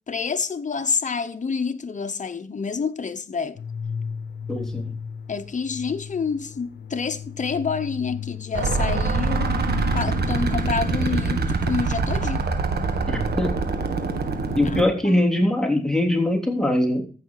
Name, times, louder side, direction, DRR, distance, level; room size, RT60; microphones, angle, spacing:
voice 1, 0.1-3.6 5.3-9.6 9.9-12.4 14.6-15.2, left 5 dB, 45° left, 1.0 m, -28 dB
sound 1, 3.6-15.1, left 8 dB, 85° left, 0.7 m, -35 dB
voice 2, 4.5-4.9 13.1-13.6 14.6-17.0, left 1 dB, 5° left, 3.3 m, -22 dB
sound 2, 8.5-14.8, right 4 dB, 70° right, 1.6 m, -24 dB
14.5 x 5.8 x 4.7 m
cardioid pair, 55°, 17 cm